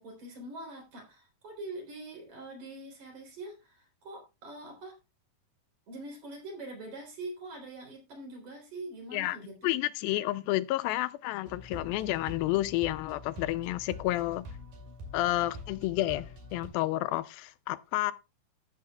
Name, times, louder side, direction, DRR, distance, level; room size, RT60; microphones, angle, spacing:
voice 1, 0.0-5.0 5.9-9.7, right 2 dB, 55° right, 4.5 m, -44 dB
voice 2, 9.6-14.5 15.1-18.1, left 16 dB, 85° left, 2.4 m, -30 dB
sound 1, 11.5-16.7, left 2 dB, 70° right, 3.9 m, -45 dB
14.0 x 7.3 x 2.3 m
omnidirectional pair, 4.1 m